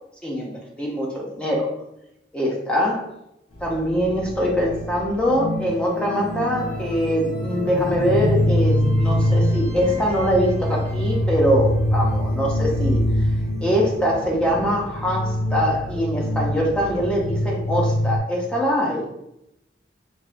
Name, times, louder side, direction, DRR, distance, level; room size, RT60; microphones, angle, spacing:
voice 1, 0.2-1.7 2.3-3.1 3.6-13.0 13.6-19.1, equal, 5° left, -2 dB, 0.5 m, -23 dB
sound 1, 3.5-18.2, equal, 35° left, 0.9 m, -24 dB
3.5 x 2.8 x 2.5 m, 0.83 s
head